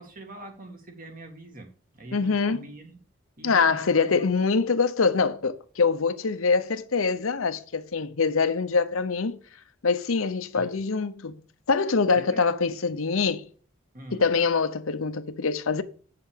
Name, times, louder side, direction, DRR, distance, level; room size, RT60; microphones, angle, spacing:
voice 1, 0.0-3.0 3.4-4.3 10.5-10.9 12.1-12.5 13.9-14.3, right 2 dB, 45° right, 2.2 m, -44 dB
voice 2, 2.1-2.6 3.4-9.4 9.8-11.4 11.7-13.5 14.1-15.8, left 4 dB, 85° left, 0.8 m, -24 dB
8.6 x 6.7 x 5.2 m
head